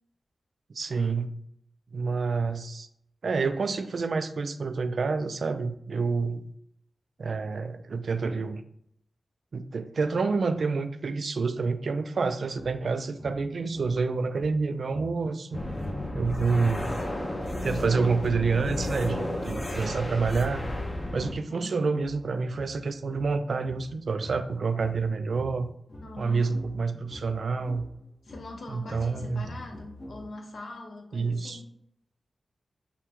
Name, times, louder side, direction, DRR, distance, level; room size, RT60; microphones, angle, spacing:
voice 1, 0.7-1.3 1.9-2.9 3.2-6.5 7.2-8.6 9.5-15.6 16.1-17.0 17.6-20.6 21.1-25.7 26.2-27.9 28.7-29.5 31.1-31.6, right 4 dB, 65° right, 10 dB, 0.3 m, -28 dB
sound 1, 12.5-21.3 21.9-30.6, equal, 45° left, 1.1 m, -47 dB
sound 2, 15.5-21.3, left 1 dB, 25° left, 0.7 m, -32 dB
voice 2, 26.0-26.5 28.2-31.6, left 2 dB, 65° left, 1 dB, 0.9 m, -42 dB
5.6 x 2.2 x 3.7 m, 0.71 s
wide cardioid pair, 105°, 0 cm